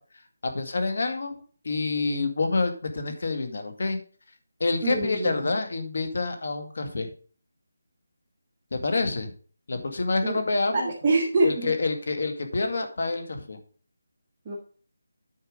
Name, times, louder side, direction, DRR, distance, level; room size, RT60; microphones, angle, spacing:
voice 1, 0.5-4.0 4.6-7.1 8.7-9.3 9.7-10.9 11.4-13.6, left 3 dB, 55° left, 6 dB, 2.1 m, -27 dB
voice 2, 4.8-5.5 10.2-10.4 10.7-11.7 14.4-14.6, right 2 dB, 20° right, -4 dB, 1.6 m, -25 dB
9.3 x 5.4 x 5.1 m, 0.41 s
figure-of-eight pair, 170°, 0 cm